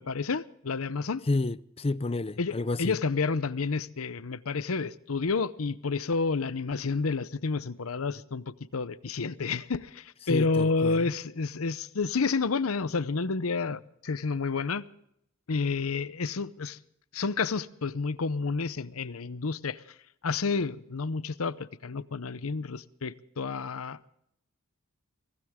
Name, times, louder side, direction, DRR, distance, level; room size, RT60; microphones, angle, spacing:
voice 1, 0.0-1.2 2.4-14.8 15.5-16.8 17.1-19.8 20.2-24.0, left 4 dB, 75° left, 0.8 m, -30 dB
voice 2, 1.3-3.0 10.3-11.0, left 2 dB, 30° left, 0.5 m, -30 dB
24.0 x 16.5 x 3.7 m
head